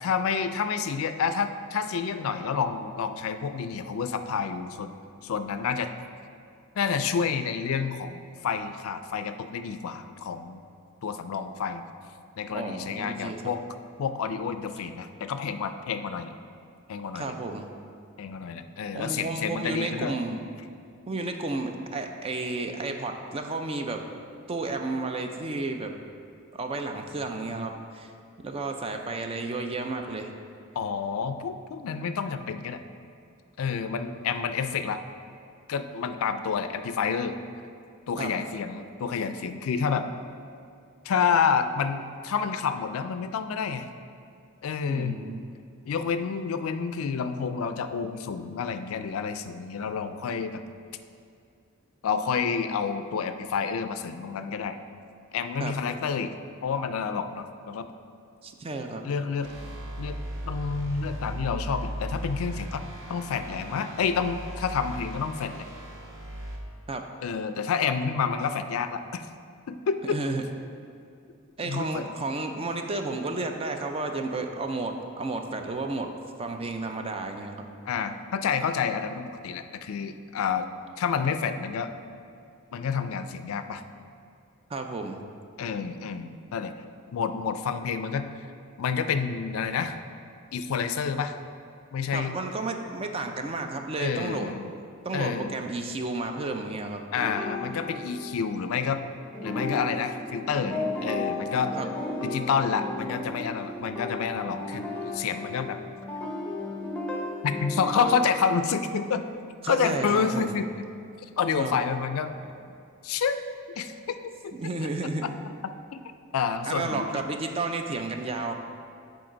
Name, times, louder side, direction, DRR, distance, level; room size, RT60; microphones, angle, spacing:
voice 1, 0.0-4.9 5.2-5.9 6.8-10.6 11.0-11.9 12.4-13.6 14.0-16.3 16.9-17.3 18.2-20.1 30.8-32.8 33.6-35.0 35.7-37.4 38.1-40.1 41.0-43.9 44.6-45.2 45.8-50.6 52.0-54.8 55.3-56.3 56.6-57.9 59.0-59.5 60.0-60.2 60.5-62.8 63.1-65.7 67.2-69.2 69.7-70.2 71.6-72.1 77.8-80.7 81.0-81.9 82.7-83.8 85.6-86.7 87.1-88.3 88.8-90.0 90.5-91.3 91.9-92.3 94.0-94.7 95.1-95.6 97.1-99.0 99.4-101.7 102.2-105.8 107.4-109.2 109.7-110.9 111.4-112.3 113.0-113.4 113.8-114.2 115.6-116.0 116.3-117.2, left 6 dB, 75° left, 10 dB, 0.4 m, -29 dB
voice 2, 12.5-13.4 17.1-17.7 18.9-20.5 21.1-24.1 24.5-25.9 26.5-28.1 28.4-30.3 38.2-38.3 44.9-45.5 55.6-55.7 58.4-59.0 66.9-67.1 70.1-70.5 71.6-77.7 84.7-85.2 92.1-94.5 95.0-97.0 101.7-101.9 109.6-110.5 111.6-111.7 114.5-115.3 116.7-118.5, right 3 dB, 25° right, 5 dB, 0.4 m, -32 dB
sound 1, 59.4-66.6, right 1 dB, 60° right, 0.9 m, -37 dB
sound 2, 97.1-99.0 99.3-108.3, left 2 dB, 5° left, 0.7 m, -34 dB
7.7 x 3.9 x 5.0 m, 2.4 s
head